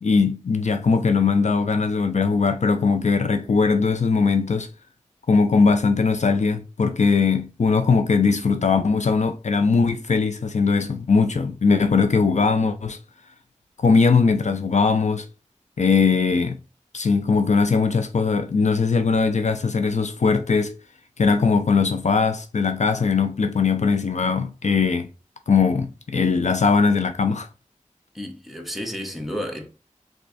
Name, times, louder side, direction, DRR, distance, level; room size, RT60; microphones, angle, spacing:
voice 1, 0.0-4.7 5.3-13.0 13.8-15.3 15.8-16.6 16.9-20.8 21.2-25.1 25.5-27.5, left 4 dB, 60° left, 0.4 m, -20 dB
voice 2, 28.1-29.7, equal, ahead, 0.9 m, -31 dB
3.5 x 3.0 x 2.5 m
wide cardioid pair, 50°, 13 cm